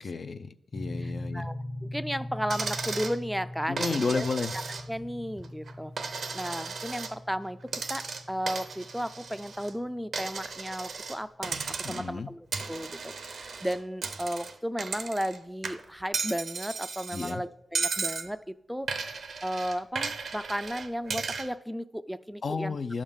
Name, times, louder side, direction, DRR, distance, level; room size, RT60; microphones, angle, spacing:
voice 1, 0.0-1.5 3.7-4.5 11.8-12.3 17.1-17.4 22.4-23.0, left 4 dB, 60° left, 10 dB, 0.5 m, -32 dB
sound 1, 0.7-10.9, left 1 dB, 35° left, 1.0 m, -42 dB
voice 2, 1.0-1.6 1.8-4.3 4.5-4.6 4.9-22.8, equal, 5° right, 13 dB, 0.3 m, -34 dB
Coin (dropping), 2.5-3.2 3.8-5.1 5.4-7.1 7.7-9.7 10.1-11.2 11.4-12.2 12.5-15.4 15.6-17.3 17.7-18.3 18.9-21.5, right 4 dB, 80° right, 0.7 m, -35 dB
11.0 x 3.7 x 7.1 m, 0.82 s
cardioid pair, 65°, 0 cm